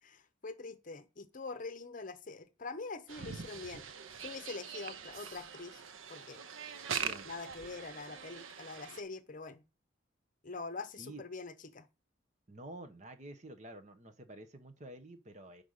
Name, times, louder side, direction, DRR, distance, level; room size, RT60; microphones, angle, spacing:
voice 1, 0.0-3.9 4.2-5.8 6.1-6.4 7.2-9.6 10.4-11.9, left 3 dB, 40° left, 0.8 m, -44 dB
sound 1, 3.1-9.0, right 7 dB, 85° right, 0.7 m, -43 dB
voice 2, 7.0-7.3 11.0-11.2 12.5-15.6, right 1 dB, 35° right, 1.0 m, -49 dB
5.5 x 5.2 x 6.4 m
head